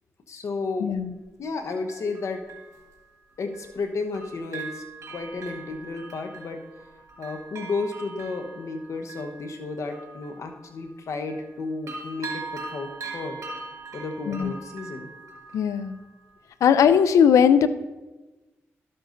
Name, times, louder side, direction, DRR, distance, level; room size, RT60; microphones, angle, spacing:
voice 1, 0.3-0.9 1.4-2.4 3.4-4.8 5.1-6.6 7.2-13.4 13.9-15.1, left 3 dB, 70° left, 5 dB, 1.0 m, -32 dB
voice 2, 0.8-1.1 14.3-14.5 15.5-16.0 16.6-17.7, left 8 dB, 85° left, 13 dB, 0.4 m, -18 dB
Bell, 0.9-1.0 1.9-3.8 4.1-11.6 11.9-16.5 16.9-17.0, right 4 dB, 75° right, 1.8 m, -41 dB
12.5 x 7.8 x 2.6 m, 1.1 s
cardioid pair, 50°, 5 cm